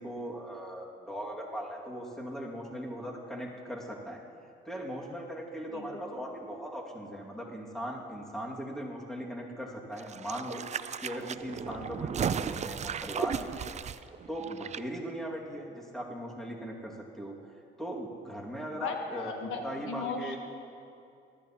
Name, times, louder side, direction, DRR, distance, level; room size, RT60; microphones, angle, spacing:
voice 1, 0.0-4.2 4.6-10.6 11.0-13.7 14.0-17.4 17.8-19.3 19.6-20.4, equal, ahead, -2 dB, 2.2 m, -39 dB
sound 1, 10.0-14.8 15.1-15.2, right 7 dB, 35° right, 0.4 m, -35 dB
voice 2, 18.8-20.4, left 4 dB, 85° left, 3 dB, 1.4 m, -36 dB
19.5 x 13.0 x 3.0 m, 2.6 s
cardioid pair, 90°, 20 cm